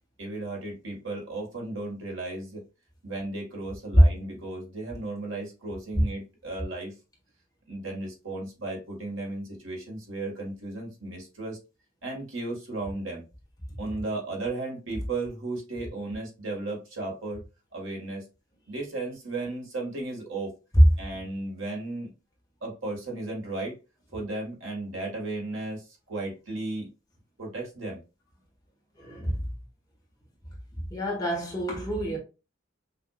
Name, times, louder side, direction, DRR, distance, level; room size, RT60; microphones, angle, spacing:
voice 1, 0.2-2.6 3.0-6.9 7.7-11.6 12.0-13.2 13.8-17.4 17.7-18.2 18.7-20.5 21.0-22.1 22.6-23.7 24.1-26.9 27.4-28.0, right 2 dB, 80° right, 1.8 m, -35 dB
voice 2, 29.0-29.3 30.9-32.2, equal, 20° left, 1.4 m, -30 dB
5.6 x 2.7 x 2.4 m
head